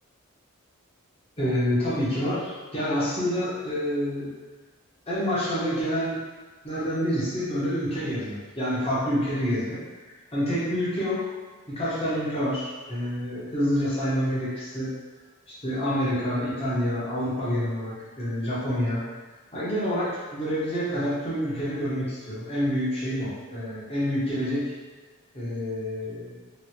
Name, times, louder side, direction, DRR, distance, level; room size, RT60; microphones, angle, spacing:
voice 1, 1.4-4.3 5.1-6.2 6.6-11.3 11.7-14.9 15.5-19.0 19.5-24.7 25.3-26.4, equal, 25° left, -10 dB, 1.0 m, -27 dB
3.0 x 2.7 x 2.8 m, 1.3 s
head